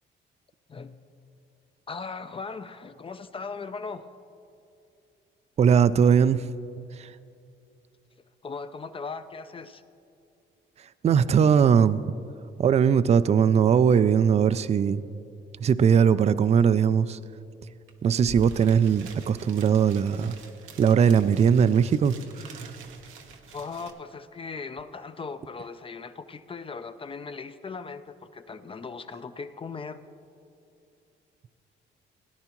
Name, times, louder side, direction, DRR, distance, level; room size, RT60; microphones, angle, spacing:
voice 1, 1.9-4.1 8.4-9.8 23.5-30.0, left 4 dB, 25° left, 11 dB, 0.5 m, -38 dB
voice 2, 5.6-6.5 7.0-7.1 11.0-12.0 12.6-15.0 15.6-17.2 18.0-20.3 20.8-22.1 22.5-22.6, right 7 dB, 35° right, 15 dB, 0.4 m, -20 dB
sound 1, 17.9-18.0 18.2-23.9, right 4 dB, 90° right, 0.9 m, -45 dB
18.0 x 10.5 x 3.0 m, 2.6 s
cardioid pair, 90°, 20 cm